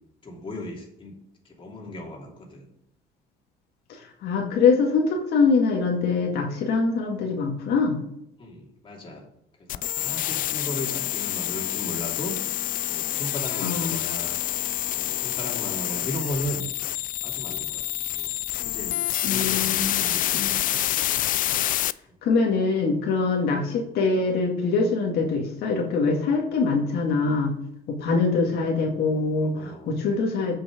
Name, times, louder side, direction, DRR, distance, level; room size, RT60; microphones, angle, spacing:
voice 1, 0.2-1.2 1.4-2.7 8.4-9.3 9.6-12.4 12.9-14.4 14.9-16.7 17.2-18.3 18.6-20.8 29.4-30.0, equal, 30° left, -1 dB, 2.8 m, -36 dB
voice 2, 3.9-8.0 13.6-14.0 19.2-20.1 20.3-20.6 22.2-27.5 27.9-30.6, left 4 dB, 75° left, 0 dB, 2.0 m, -24 dB
sound 1, 9.7-21.9, left 13 dB, 55° left, 0.4 m, -27 dB
8.4 x 6.2 x 5.0 m, 0.77 s
cardioid pair, 110°, 17 cm